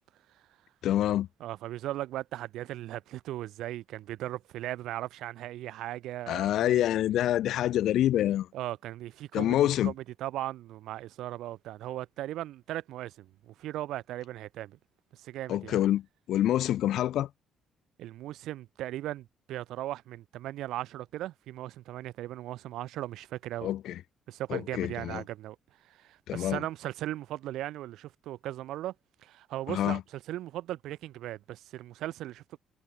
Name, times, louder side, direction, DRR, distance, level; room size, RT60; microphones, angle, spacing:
voice 1, 0.8-1.3 6.3-8.5 9.3-9.9 15.5-17.3 23.6-24.0 24.5-25.2 26.3-26.6 29.7-30.0, left 12 dB, 65° left, 3.6 m, -27 dB
voice 2, 1.4-6.8 8.5-14.8 15.1-15.8 18.0-23.8 24.3-25.6 25.8-28.9 29.2-32.6, right 14 dB, 80° right, 7.8 m, -38 dB
cardioid pair, 160°, 0 cm